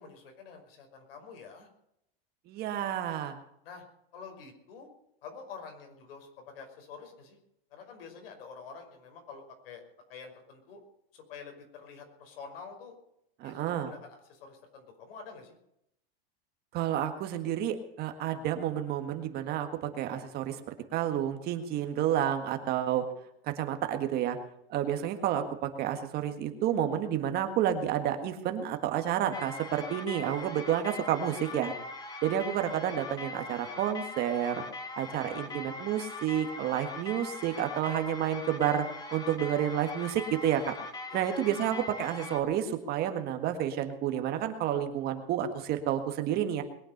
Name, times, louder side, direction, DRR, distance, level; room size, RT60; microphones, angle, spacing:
voice 1, 0.0-1.7 3.6-3.8 4.1-4.9 5.2-7.4 7.7-9.8 10.1-10.8 11.1-13.0 13.4-15.6 41.1-41.4, left 5 dB, 70° left, 4 dB, 5.5 m, -47 dB
voice 2, 2.5-3.4 13.4-13.9 16.7-20.6 20.9-23.0 23.4-24.4 24.7-31.7 32.2-34.6 34.9-38.8 39.1-40.7 41.1-46.6, right 10 dB, 30° right, 7 dB, 1.7 m, -30 dB
sound 1, 29.3-42.4, left 2 dB, 15° left, 1.6 m, -41 dB
21.5 x 8.8 x 6.7 m, 0.75 s
supercardioid pair, 155°, 30 cm